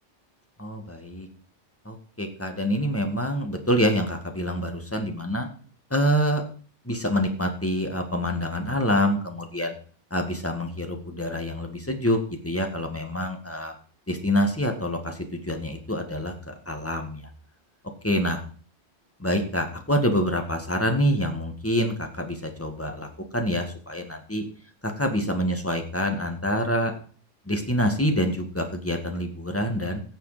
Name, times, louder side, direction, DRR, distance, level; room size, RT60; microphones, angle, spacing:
voice 1, 0.6-1.3 1.9-5.5 5.9-6.4 6.9-9.7 10.1-12.2 12.4-13.7 14.1-17.3 18.0-18.4 19.2-23.1 23.3-24.4 24.8-26.9 27.5-30.0, equal, 10° left, 4 dB, 1.9 m, -26 dB
16.5 x 6.8 x 5.1 m, 0.42 s
omnidirectional pair, 1.2 m